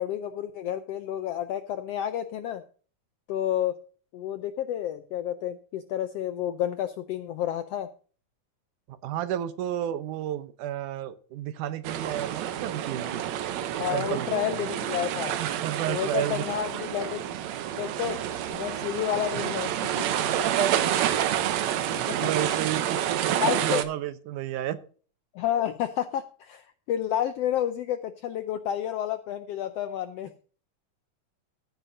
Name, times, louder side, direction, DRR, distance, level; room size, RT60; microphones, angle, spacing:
voice 1, 0.0-2.6 3.3-3.8 4.1-7.9 13.8-15.4 15.9-17.2 17.7-18.2 18.5-20.1 22.1-22.2 23.4-23.8 25.3-30.3, left 10 dB, 85° left, 10 dB, 1.4 m, -30 dB
voice 2, 8.9-13.3 13.9-14.6 15.4-16.4 20.3-20.7 21.2-21.3 21.7-21.8 22.2-24.8, right 11 dB, 90° right, 12 dB, 2.4 m, -31 dB
sound 1, 11.8-23.8, right 10 dB, 70° right, 2.0 m, -29 dB
15.0 x 9.2 x 2.7 m, 0.40 s
omnidirectional pair, 3.5 m